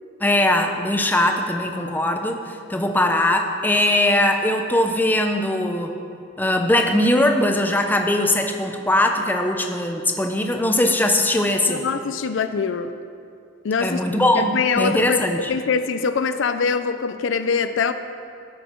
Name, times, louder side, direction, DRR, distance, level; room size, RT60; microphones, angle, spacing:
voice 1, 0.2-2.4 2.7-5.9 6.4-11.8 13.8-15.5, left 1 dB, 10° left, 4 dB, 0.7 m, -20 dB
voice 2, 11.7-12.9 13.6-14.0 14.3-17.9, left 5 dB, 70° left, 10 dB, 0.4 m, -23 dB
15.5 x 6.3 x 4.5 m, 2.4 s
head